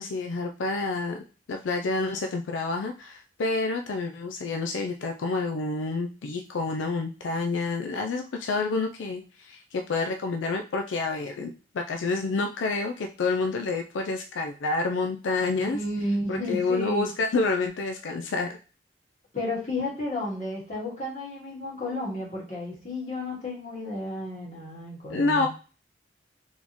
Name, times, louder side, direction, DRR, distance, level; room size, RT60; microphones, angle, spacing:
voice 1, 0.0-15.8 16.3-18.6 25.1-25.5, left 3 dB, 80° left, 4 dB, 0.4 m, -28 dB
voice 2, 15.6-17.1 19.3-25.5, left 1 dB, 40° left, -4 dB, 1.9 m, -32 dB
4.2 x 3.6 x 2.9 m, 0.36 s
head